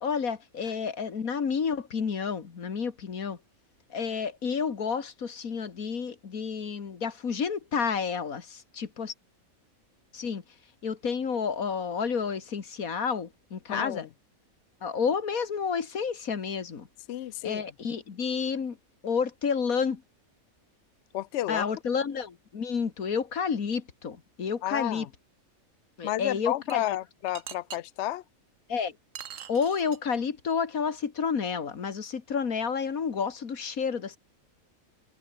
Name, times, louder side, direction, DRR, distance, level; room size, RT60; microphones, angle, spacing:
voice 1, 0.0-3.4 3.9-9.1 10.1-10.4 10.8-14.1 14.8-16.9 17.4-18.8 19.0-20.0 21.5-25.1 26.0-26.8 28.7-28.9 29.5-34.2, left 6 dB, 80° left, 2.2 m, -30 dB
voice 2, 13.7-14.1 17.1-17.6 21.1-21.6 24.6-25.1 26.0-28.2, left 14 dB, 65° left, 0.8 m, -31 dB
sound 1, 26.7-26.8 27.3-27.8 29.1-30.2, right 8 dB, 65° right, 1.4 m, -42 dB
omnidirectional pair, 1.5 m